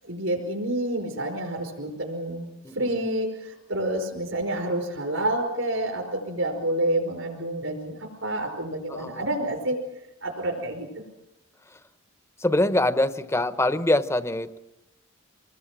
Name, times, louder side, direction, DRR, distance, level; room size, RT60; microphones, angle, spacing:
voice 1, 0.1-2.5 2.8-9.8 10.2-11.0, right 1 dB, 65° right, 3 dB, 5.2 m, -28 dB
voice 2, 2.6-3.1 8.9-9.3 12.4-14.6, left 1 dB, 15° left, 12 dB, 0.9 m, -24 dB
26.5 x 20.0 x 7.5 m, 0.90 s
head